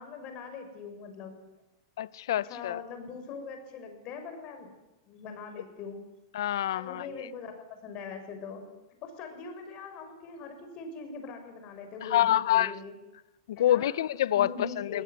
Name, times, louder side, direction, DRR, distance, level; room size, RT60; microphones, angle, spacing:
voice 1, 0.0-1.3 2.4-4.7 5.1-6.0 6.7-8.6 9.0-12.9 13.6-14.0 14.3-15.0, left 5 dB, 40° left, 6.5 m, -42 dB
voice 2, 2.0-2.8 6.3-7.1 12.1-12.7 13.5-14.5 14.8-15.0, left 12 dB, 75° left, 0.7 m, -26 dB
23.5 x 17.5 x 9.5 m
hypercardioid pair, 130°, 2 cm